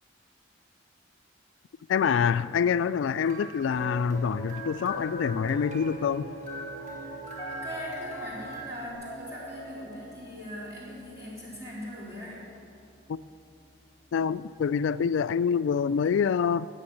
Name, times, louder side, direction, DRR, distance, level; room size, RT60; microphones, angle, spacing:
voice 1, 1.9-6.3 13.1-13.2 14.1-16.7, left 6 dB, 80° left, 15 dB, 0.3 m, -26 dB
sound 1, 3.2-8.9, equal, 40° right, 1.7 m, -43 dB
Piano, 3.7-14.1, right 1 dB, 20° left, 3.4 m, -43 dB
voice 2, 7.5-12.4, equal, 15° right, -7 dB, 4.0 m, -40 dB
17.5 x 7.0 x 8.5 m, 2.6 s
head